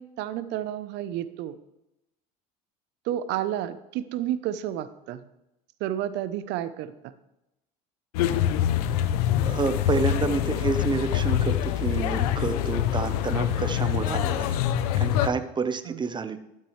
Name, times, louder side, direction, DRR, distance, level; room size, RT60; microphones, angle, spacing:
voice 1, 0.0-1.5 3.1-5.2 5.8-6.9 15.9-16.0, right 12 dB, 65° right, 13 dB, 0.8 m, -31 dB
sound 1, 8.1-15.3, left 11 dB, 85° left, 0.7 m, -25 dB
voice 2, 9.4-14.6 15.0-16.4, right 4 dB, 25° right, 11 dB, 0.9 m, -29 dB
12.5 x 7.5 x 3.2 m, 0.89 s
supercardioid pair, 90°, 19 cm